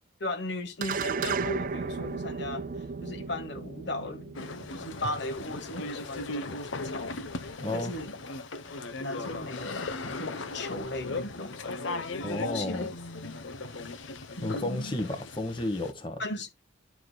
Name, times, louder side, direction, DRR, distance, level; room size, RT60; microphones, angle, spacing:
voice 1, 0.2-2.7 3.0-7.1 7.7-8.1 9.0-11.6 12.4-12.9 14.4-15.0 16.2-16.5, left 1 dB, 60° left, 1.3 m, -37 dB
sound 1, 0.8-5.4, right 4 dB, 45° right, 0.5 m, -34 dB
sound 2, 4.3-15.9, left 3 dB, 75° left, 0.9 m, -37 dB
voice 2, 7.6-7.9 12.2-12.9 14.4-16.2, left 1 dB, 25° left, 1.1 m, -32 dB
11.5 x 4.8 x 2.2 m
head